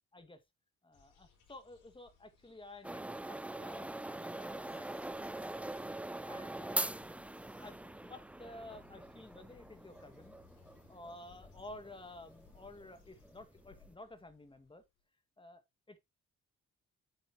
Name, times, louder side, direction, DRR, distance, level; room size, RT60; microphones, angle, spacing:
voice 1, 0.8-5.2 6.3-6.9 7.6-10.4 10.9-14.8 15.4-15.6 15.9-16.0, left 2 dB, 15° left, 1.9 m, -52 dB
sound 1, 0.9-15.0, left 6 dB, 80° left, 4.3 m, -65 dB
sound 2, 2.8-13.9, right 1 dB, 5° right, 0.4 m, -43 dB
9.1 x 7.7 x 2.9 m
cardioid pair, 90°, 30 cm